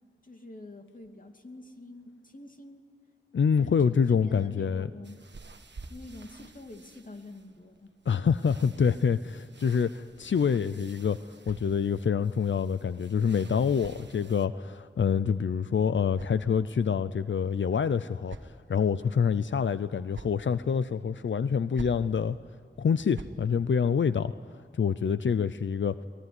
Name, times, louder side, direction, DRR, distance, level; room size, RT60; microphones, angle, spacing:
voice 1, 0.2-2.9 3.6-5.2 5.9-7.9, left 2 dB, 45° left, 4 dB, 2.6 m, -46 dB
voice 2, 3.3-4.9 8.1-22.4 22.8-24.3 24.7-26.0, left 6 dB, 90° left, 13 dB, 0.6 m, -26 dB
sound 1, 5.0-14.5, right 3 dB, 70° right, 1.4 m, -53 dB
sound 2, 11.0-12.2 13.2-14.6 15.6-17.0 17.8-18.8 19.8-20.5 21.5-22.1 22.9-23.4, right 3 dB, 85° right, 1.4 m, -48 dB
23.5 x 19.5 x 9.7 m, 2.3 s
wide cardioid pair, 70°, 19 cm